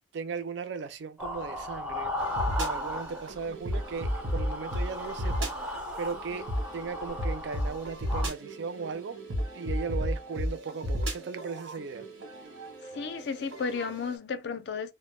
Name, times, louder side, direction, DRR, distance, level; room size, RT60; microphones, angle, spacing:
voice 1, 0.0-2.1 2.6-6.5 6.7-9.2 9.5-12.1, right 5 dB, 75° right, 0.4 m, -37 dB
sound 1, 1.2-3.5 3.7-8.3, left 1 dB, 5° right, 0.4 m, -36 dB
sound 2, 2.2-14.2, equal, 90° right, 1.0 m, -34 dB
voice 2, 12.9-14.9, left 5 dB, 65° left, 0.4 m, -33 dB
2.1 x 2.0 x 3.1 m
head